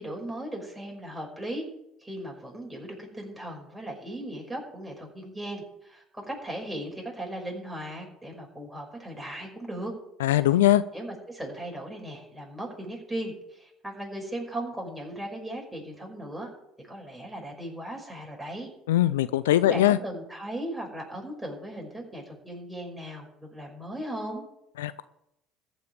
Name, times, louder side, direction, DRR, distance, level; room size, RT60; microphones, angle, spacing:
voice 1, 0.0-1.7 2.0-9.9 10.9-16.5 16.8-18.7 19.6-24.4, right 1 dB, 5° right, -1 dB, 5.5 m, -37 dB
voice 2, 10.2-10.8 18.9-20.0 24.8-25.0, left 14 dB, 85° left, 15 dB, 0.4 m, -21 dB
14.5 x 5.3 x 9.3 m, 0.81 s
hypercardioid pair, 70°, 0 cm